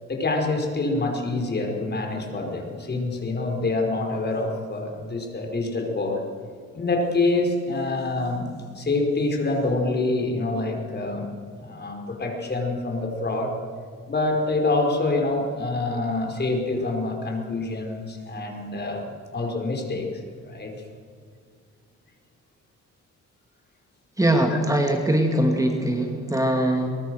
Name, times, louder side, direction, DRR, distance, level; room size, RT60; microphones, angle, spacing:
voice 1, 0.1-6.2 6.7-8.5 8.7-11.3 11.6-13.5 14.1-20.1 20.4-20.7 24.5-24.6, left 2 dB, 35° left, 2 dB, 5.1 m, -26 dB
voice 2, 24.2-26.9, right 1 dB, 10° right, 3 dB, 2.3 m, -22 dB
22.5 x 21.5 x 6.5 m, 2.2 s
cardioid pair, 90°, 30 cm